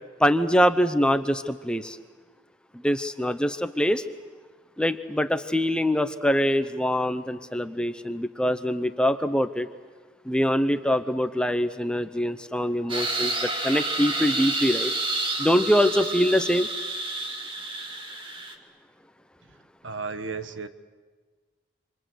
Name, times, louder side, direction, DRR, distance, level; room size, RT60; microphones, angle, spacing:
voice 1, 0.2-2.0 2.8-4.0 4.8-9.7 10.3-14.9 15.4-16.7, equal, 5° left, 10 dB, 0.8 m, -24 dB
sound 1, 12.9-18.5, right 2 dB, 25° right, 2.2 m, -29 dB
voice 2, 19.8-20.7, right 4 dB, 75° right, 10 dB, 1.4 m, -33 dB
27.0 x 26.5 x 8.0 m, 1.4 s
head